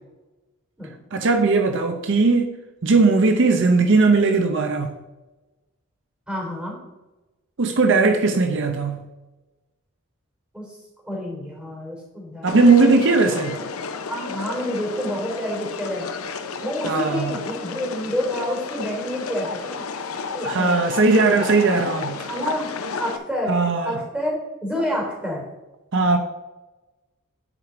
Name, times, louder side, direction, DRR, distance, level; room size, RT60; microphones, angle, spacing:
voice 1, 1.1-2.5 2.8-4.9 7.6-9.1 12.4-13.6 16.8-17.3 20.4-22.3 23.5-24.0 25.9-26.2, right 3 dB, 60° right, 6 dB, 0.8 m, -18 dB
voice 2, 6.3-6.8 10.5-10.8 11.0-12.6 14.1-16.1 16.6-19.8 20.3-20.8 21.6-21.7 22.3-22.7 23.0-23.6 23.8-25.4, equal, 5° right, -2 dB, 3.2 m, -28 dB
sound 1, 12.5-23.2, left 5 dB, 85° left, 0.8 m, -32 dB
9.9 x 5.0 x 5.0 m, 1.1 s
head